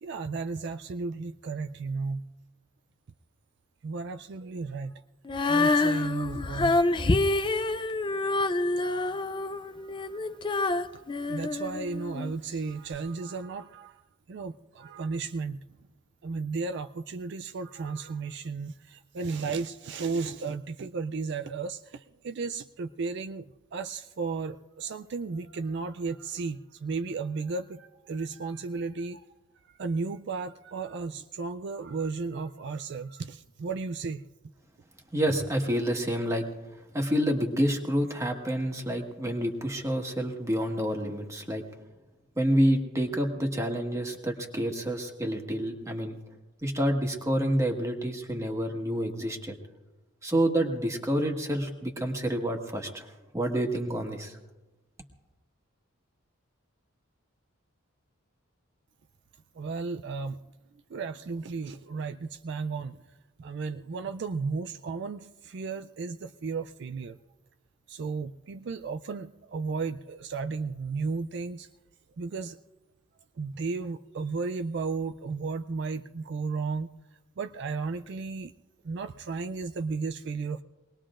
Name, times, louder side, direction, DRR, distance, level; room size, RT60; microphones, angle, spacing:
voice 1, 0.0-2.2 3.8-4.9 5.5-6.8 9.3-10.5 10.8-14.0 14.3-15.6 16.2-29.2 29.7-34.2 59.5-60.4 60.9-67.2 67.9-71.7 72.2-72.6 73.4-76.9 77.4-78.5 78.8-80.6, right 4 dB, 55° right, 8 dB, 0.4 m, -34 dB
Female singing, 5.3-12.3 12.9-13.0, left 2 dB, 25° left, 0.4 m, -27 dB
voice 2, 35.1-36.4 36.9-41.6 42.3-46.2 46.6-49.5 50.2-54.4, equal, 15° right, 2 dB, 1.5 m, -28 dB
24.0 x 19.5 x 2.5 m, 1.1 s
head